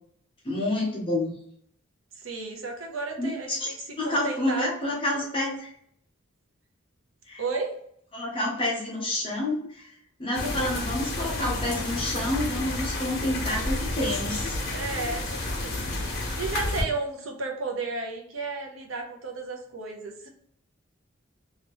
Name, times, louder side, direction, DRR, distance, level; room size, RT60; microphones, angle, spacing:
voice 1, 0.4-1.3 3.2-5.7 7.3-7.4 8.1-9.9 10.2-14.6, left 1 dB, 25° left, -3 dB, 1.0 m, -29 dB
voice 2, 2.1-4.7 7.4-7.8 14.7-20.3, right 3 dB, 75° right, 2 dB, 0.7 m, -33 dB
sound 1, 10.3-16.8, left 2 dB, 55° left, 1.0 m, -30 dB
2.9 x 2.9 x 3.0 m, 0.67 s
head